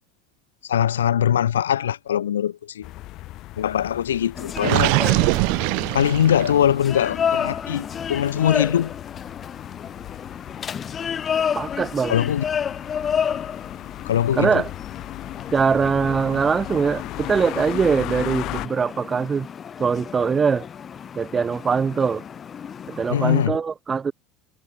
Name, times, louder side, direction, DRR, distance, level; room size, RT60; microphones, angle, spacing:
voice 1, 0.6-2.9 3.6-5.0 5.9-9.0 12.1-12.4 14.0-14.6 23.1-23.6, left 10 dB, 85° left, 0.7 m, -22 dB
sound 1, 2.8-18.7, left 17 dB, 60° left, 2.2 m, -37 dB
sound 2, 4.3-23.5, left 7 dB, 35° left, 3.0 m, -31 dB
Gurgling, 4.6-6.7, right 40 dB or more, 65° right, 0.8 m, -22 dB
voice 2, 11.5-12.2 14.4-14.7 15.5-19.5 19.8-20.7 21.2-22.2 22.9-24.1, right 5 dB, 30° right, 1.9 m, -22 dB
hypercardioid pair, 70°, 0 cm